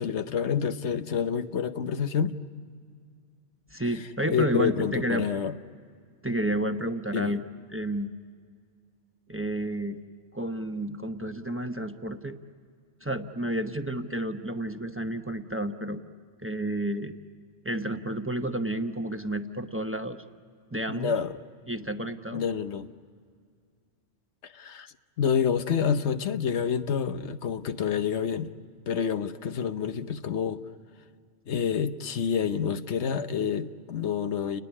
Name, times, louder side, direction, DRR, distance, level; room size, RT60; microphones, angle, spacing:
voice 1, 0.0-2.3 4.3-5.5 7.1-7.3 20.9-21.4 22.3-22.9 24.4-28.5 28.9-30.6 31.5-34.6, left 7 dB, 75° left, 10 dB, 1.1 m, -28 dB
voice 2, 3.7-5.3 6.2-7.4 7.7-8.1 9.3-10.0 10.3-12.4 13.0-16.0 16.4-17.2 17.6-20.2 20.7-21.2 21.7-22.4, right 1 dB, 15° right, 7 dB, 0.8 m, -31 dB
30.0 x 20.0 x 9.7 m, 2.1 s
omnidirectional pair, 1.2 m